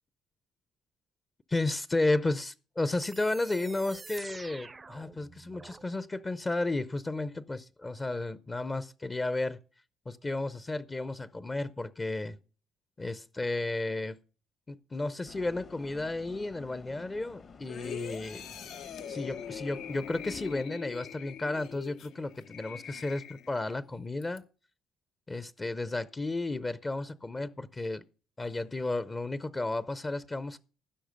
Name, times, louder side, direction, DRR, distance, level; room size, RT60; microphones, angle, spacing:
voice 1, 1.5-9.6 10.1-12.4 13.0-14.2 14.7-18.5 19.1-24.4 25.3-28.0 28.4-30.6, left 2 dB, 20° left, 0.6 m, -33 dB
sound 1, 3.0-5.9, right 3 dB, 25° right, 0.5 m, -47 dB
sound 2, 15.3-20.7, left 5 dB, 45° left, 1.1 m, -52 dB
sound 3, 17.7-23.8 24.2-24.4, left 8 dB, 75° left, 0.8 m, -43 dB
15.5 x 6.2 x 5.1 m
cardioid pair, 95°, 0 cm